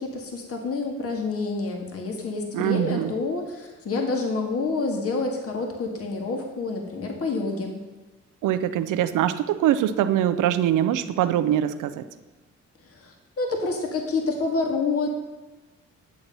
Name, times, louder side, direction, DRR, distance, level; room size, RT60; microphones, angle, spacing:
voice 1, 0.0-7.8 12.8-15.1, left 3 dB, 50° left, 2 dB, 1.9 m, -28 dB
voice 2, 2.5-3.1 8.4-12.0, right 11 dB, 85° right, 11 dB, 0.8 m, -23 dB
10.5 x 7.7 x 5.5 m, 1.2 s
cardioid pair, 90°, 30 cm